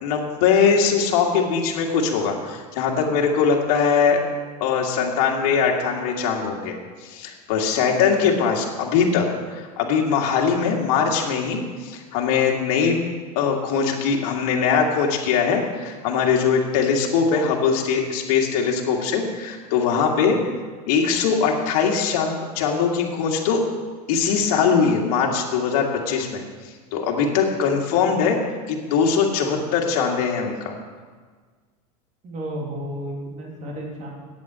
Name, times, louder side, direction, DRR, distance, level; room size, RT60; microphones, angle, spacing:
voice 1, 0.0-4.2 4.6-13.0 13.4-20.4 20.9-23.6 24.1-28.4 28.7-30.7, left 6 dB, 65° left, -1 dB, 2.0 m, -21 dB
voice 2, 32.2-34.1, right 1 dB, 35° right, -2 dB, 3.1 m, -32 dB
8.8 x 8.4 x 7.5 m, 1.5 s
supercardioid pair, 125°, 20 cm